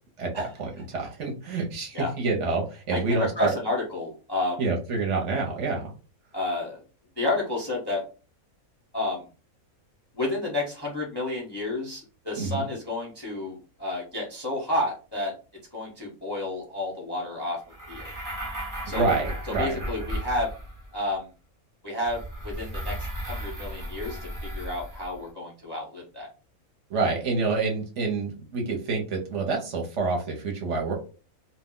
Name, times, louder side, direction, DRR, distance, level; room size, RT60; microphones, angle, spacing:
voice 1, 0.2-3.5 4.6-5.9 12.3-12.6 18.9-19.8 26.9-30.9, right 4 dB, 60° right, 1 dB, 0.9 m, -27 dB
voice 2, 2.9-4.6 6.3-6.8 7.2-8.0 8.9-9.2 10.1-15.3 15.7-17.6 17.9-18.1 18.8-19.2 19.5-20.5 20.9-21.3 21.8-26.3, left 2 dB, 35° left, -3 dB, 0.4 m, -30 dB
sound 1, 17.7-20.9 22.0-25.2, right 1 dB, 25° right, 0.4 m, -35 dB
2.4 x 2.1 x 3.6 m, 0.36 s
omnidirectional pair, 1.5 m